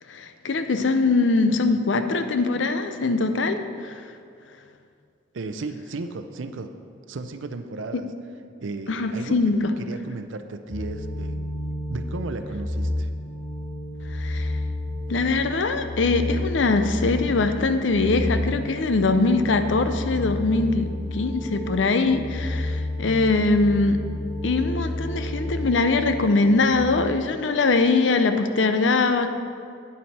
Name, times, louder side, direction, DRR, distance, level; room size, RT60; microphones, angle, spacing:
voice 1, 0.0-4.2 4.5-4.6 7.9-8.0 8.9-9.8 14.0-14.6 15.1-24.0 24.4-29.3, left 3 dB, 80° left, 8 dB, 0.6 m, -22 dB
voice 2, 5.3-6.7 7.1-8.1 8.6-9.3 9.8-11.4 11.9-13.1, right 3 dB, 90° right, 8 dB, 0.5 m, -34 dB
sound 1, 10.7-26.7, left 1 dB, 35° left, 1.7 m, -31 dB
9.5 x 7.6 x 4.2 m, 2.3 s
head